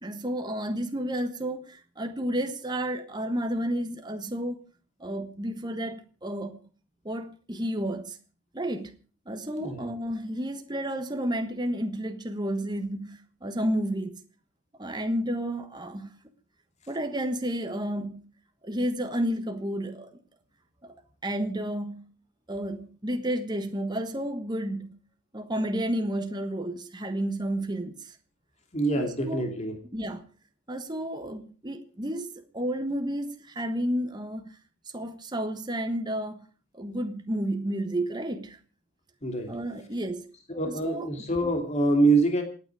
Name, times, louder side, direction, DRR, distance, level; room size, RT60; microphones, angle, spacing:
voice 1, 0.0-4.6 5.0-6.6 7.0-8.2 8.5-9.0 9.3-14.2 14.8-16.1 16.9-18.3 18.6-20.2 20.8-20.9 21.2-22.1 22.5-25.0 25.3-28.2 28.9-29.5 29.9-30.3 30.7-34.6 34.9-36.5 36.7-38.6 39.5-40.3 40.6-41.1, right 1 dB, 20° right, 1.3 m, -31 dB
voice 2, 28.7-29.8 39.2-39.5 40.5-42.4, right 2 dB, 30° left, 2.8 m, -25 dB
27.5 x 9.5 x 4.8 m
head